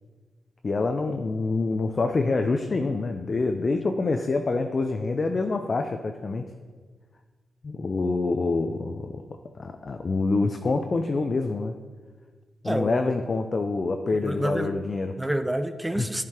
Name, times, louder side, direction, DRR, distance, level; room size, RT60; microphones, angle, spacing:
voice 1, 0.6-6.4 7.6-9.2 9.6-11.7 12.6-15.1 15.9-16.1, left 3 dB, 50° left, 5 dB, 0.6 m, -26 dB
voice 2, 12.6-13.1 14.2-14.7 15.2-16.2, right 1 dB, 10° right, 10 dB, 0.6 m, -28 dB
10.5 x 5.0 x 4.4 m, 1.4 s
supercardioid pair, 45°, 0 cm